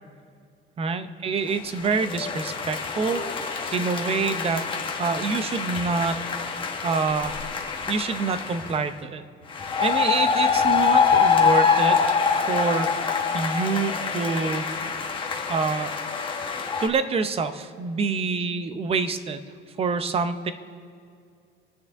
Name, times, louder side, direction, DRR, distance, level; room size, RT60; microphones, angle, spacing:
voice 1, 0.8-4.7 5.0-6.2 6.5-7.4 7.9-9.2 9.8-12.0 12.5-14.7 15.5-16.0 16.8-19.4 19.8-20.5, right 4 dB, 30° right, 11 dB, 0.6 m, -26 dB
sound 1, 1.5-8.8 9.5-16.9, left 6 dB, 25° left, 1.2 m, -25 dB
25.5 x 9.0 x 3.6 m, 2.3 s
cardioid pair, 150°, 20 cm